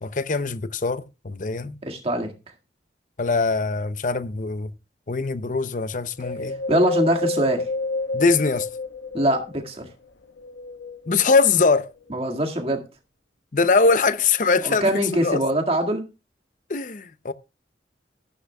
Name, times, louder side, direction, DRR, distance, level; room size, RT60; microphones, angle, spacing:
voice 1, 0.0-1.8 3.2-4.7 5.1-6.6 8.1-8.7 11.1-11.9 13.5-14.9 15.2-15.4 16.7-17.3, left 4 dB, 45° left, 0.6 m, -22 dB
voice 2, 1.8-2.3 6.7-7.7 9.1-9.9 12.1-12.8 14.6-16.0, right 1 dB, 35° right, 1.9 m, -23 dB
Wind, 6.2-9.7 10.3-11.5 12.1-12.2, left 3 dB, 85° left, 0.8 m, -29 dB
14.0 x 11.0 x 2.3 m
head